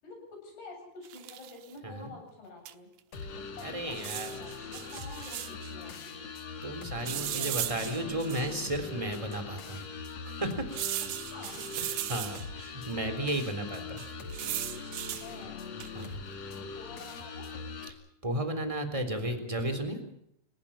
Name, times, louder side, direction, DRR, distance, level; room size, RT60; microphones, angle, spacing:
voice 1, 0.0-2.9 3.3-6.3 7.2-7.5 11.2-11.5 12.9-13.4 15.2-15.7 16.8-17.9, left 3 dB, 75° left, 2 dB, 10.0 m, -48 dB
sound 1, 1.0-1.7 2.7-2.8 3.0-3.1 3.9-5.7 7.1-8.7 9.3-9.4 10.7-12.7 14.0-15.3 15.8-16.1, right 14 dB, 85° right, 3.2 m, -37 dB
sound 2, 3.1-17.9, left 4 dB, 45° left, 2.9 m, -42 dB
voice 2, 3.6-4.3 6.6-9.8 10.2-10.7 11.8-14.0 15.9-16.2 18.2-20.0, right 1 dB, 10° right, 7 dB, 3.2 m, -34 dB
29.5 x 18.0 x 5.8 m, 0.75 s
omnidirectional pair, 4.7 m